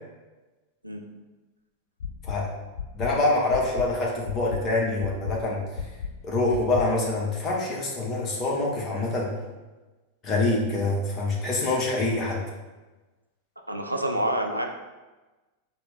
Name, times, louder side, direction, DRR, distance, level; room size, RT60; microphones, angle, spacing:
sound 1, 2.0-2.3 2.7-3.1 3.5-3.9 4.2-4.6 5.0-5.3 5.7-6.1 6.5-6.8, left 7 dB, 65° left, 0.3 m, -32 dB
voice 1, 2.9-5.6 6.2-9.3 10.2-12.4, left 2 dB, 25° left, -3 dB, 1.0 m, -25 dB
voice 2, 13.7-14.7, right 1 dB, 90° right, 3 dB, 0.4 m, -27 dB
4.2 x 2.1 x 4.0 m, 1.2 s
figure-of-eight pair, 90°, 0 cm